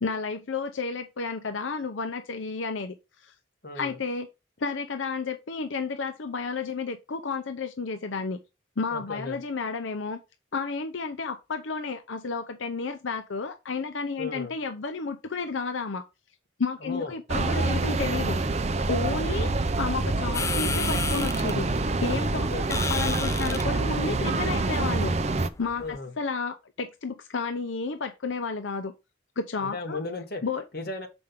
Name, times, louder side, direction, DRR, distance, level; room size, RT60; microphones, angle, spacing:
voice 1, 0.0-3.3 3.8-4.3 4.6-8.4 8.8-10.2 10.5-16.0 16.6-18.4 18.9-25.2 25.6-28.9 29.4-30.0 30.4-30.6, left 4 dB, 85° left, 0.7 m, -32 dB
voice 2, 3.6-4.0 8.9-9.4 14.2-14.5 16.8-17.1 22.3-22.8 25.8-26.1 29.6-30.4 30.7-31.1, left 3 dB, 55° left, 1.7 m, -35 dB
sound 1, 17.3-25.5, right 3 dB, 35° right, 0.6 m, -26 dB
sound 2, 20.3-26.0, left 5 dB, 15° left, 0.3 m, -35 dB
7.0 x 5.2 x 3.7 m
head